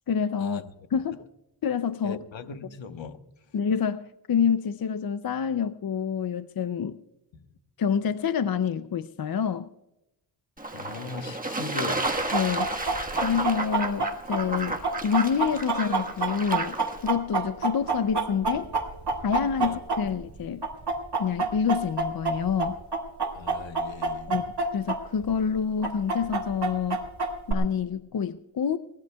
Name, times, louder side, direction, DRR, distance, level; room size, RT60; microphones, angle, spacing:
voice 1, 0.1-0.6 0.9-1.2 1.6-2.2 3.5-7.0 7.8-9.7 12.3-12.7 13.2-16.8 17.0-18.7 19.2-20.7 21.2-22.8 24.3-24.5 24.7-27.0 27.5-28.8, left 7 dB, 50° left, 0.5 m, -27 dB
voice 2, 2.0-3.2 7.3-7.4 10.7-12.0 19.6-19.8 23.3-24.4, left 4 dB, 70° left, 1.2 m, -39 dB
Fowl / Bird / Water, 10.6-17.1, right 2 dB, 15° right, 1.4 m, -32 dB
Chicken rooster, 12.0-20.3 20.6-25.0 25.2-25.3 25.8-27.5, right 4 dB, 55° right, 2.1 m, -27 dB
22.0 x 18.5 x 2.3 m
wide cardioid pair, 140°, 48 cm